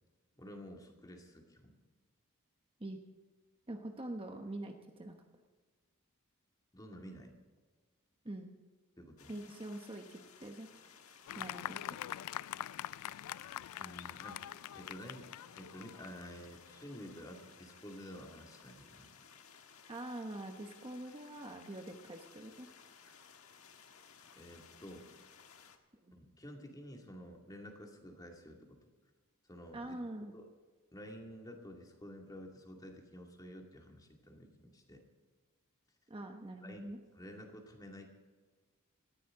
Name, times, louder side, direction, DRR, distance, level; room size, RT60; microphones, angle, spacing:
voice 1, 0.4-1.8 6.7-7.4 9.0-9.3 13.8-14.4 14.7-15.3 15.6-19.1 24.3-25.1 26.1-28.9 29.5-30.0 30.3-30.5 30.9-35.0 36.6-36.9 37.1-38.1, equal, 15° left, 1 dB, 2.3 m, -51 dB
voice 2, 3.7-5.3 8.2-8.5 9.3-10.7 11.3-12.0 19.9-22.7 26.0-26.2 29.7-30.3 36.1-37.0, right 1 dB, 25° right, 4 dB, 1.0 m, -44 dB
sound 1, 9.2-25.8, left 6 dB, 70° left, 1.5 m, -59 dB
Fireworks, 11.3-17.0, left 12 dB, 90° left, 0.3 m, -44 dB
19.0 x 14.5 x 3.8 m, 1.4 s
head